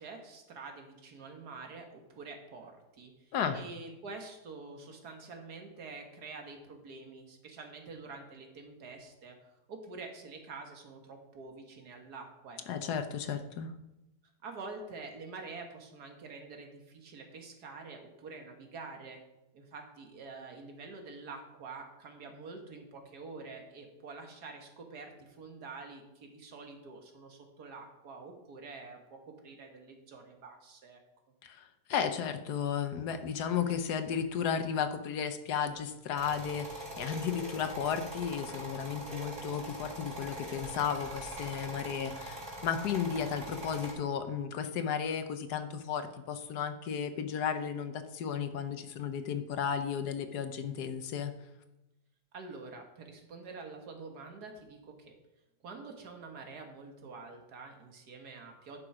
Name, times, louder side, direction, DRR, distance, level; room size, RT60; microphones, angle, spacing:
voice 1, 0.0-12.9 14.4-19.2 19.5-31.0 52.3-55.2 55.6-58.8, right 4 dB, 65° right, 3 dB, 2.0 m, -47 dB
voice 2, 12.7-13.7 31.4-42.4 42.6-51.3, left 7 dB, 70° left, 9 dB, 1.4 m, -34 dB
sound 1, 36.2-43.9, right 1 dB, 25° right, 3.7 m, -42 dB
11.0 x 6.6 x 4.9 m, 0.94 s
omnidirectional pair, 1.8 m